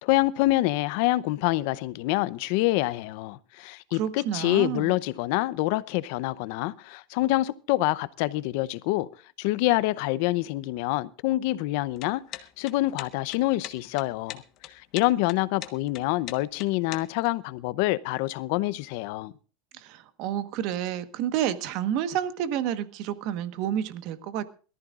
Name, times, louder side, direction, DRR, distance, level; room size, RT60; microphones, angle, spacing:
voice 1, 0.0-9.1 9.4-14.4 14.7-19.3, left 18 dB, 50° left, 0.6 m, -26 dB
voice 2, 3.9-4.9 19.7-24.4, right 10 dB, 45° right, 1.3 m, -30 dB
sound 1, 11.9-17.3, left 13 dB, 35° left, 1.2 m, -41 dB
22.5 x 14.0 x 2.5 m
supercardioid pair, 175°, 0 cm